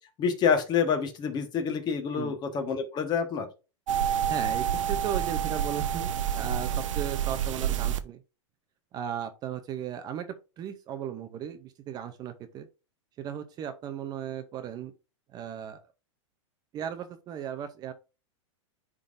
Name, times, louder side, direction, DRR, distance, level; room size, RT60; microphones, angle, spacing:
voice 1, 0.2-3.5, left 6 dB, 25° left, 6 dB, 1.3 m, -27 dB
sound 1, 3.9-8.0, right 9 dB, 80° right, 0.7 m, -28 dB
voice 2, 4.3-8.2 8.9-12.7 13.2-14.9 15.3-15.8 16.7-17.9, right 9 dB, 25° right, 9 dB, 0.6 m, -36 dB
10.0 x 3.7 x 2.6 m, 0.30 s
supercardioid pair, 145°, 16 cm